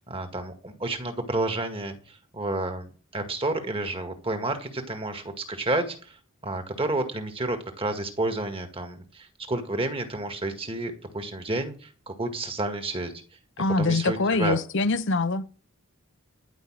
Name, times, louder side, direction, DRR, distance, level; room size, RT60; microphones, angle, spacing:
voice 1, 0.0-6.2 6.4-13.1 13.8-14.6, right 2 dB, 25° right, 1.9 m, -30 dB
voice 2, 13.6-15.5, left 3 dB, 60° left, 0.8 m, -24 dB
11.5 x 5.4 x 8.9 m
head